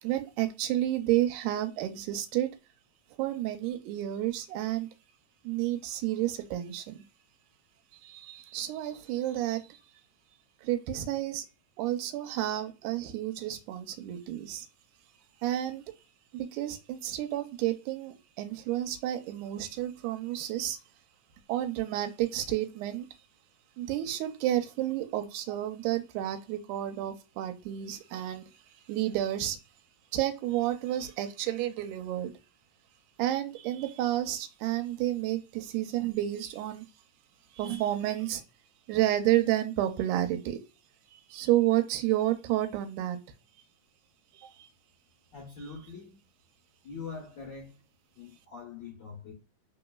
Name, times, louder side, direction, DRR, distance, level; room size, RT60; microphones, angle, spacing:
voice 1, 0.0-2.5 3.2-4.9 5.4-7.1 7.9-9.8 10.6-11.5 11.8-14.7 15.4-15.8 16.3-20.8 21.5-23.1 23.8-28.5 28.9-29.6 30.1-32.3 33.2-36.9 37.5-38.4 38.9-40.6 41.1-43.2 44.3-44.7, right 13 dB, 90° right, 2.1 m, -30 dB
voice 2, 45.3-46.2 46.8-47.8 48.1-49.3, left 5 dB, 65° left, 1.1 m, -43 dB
3.9 x 3.8 x 2.2 m
omnidirectional pair, 3.5 m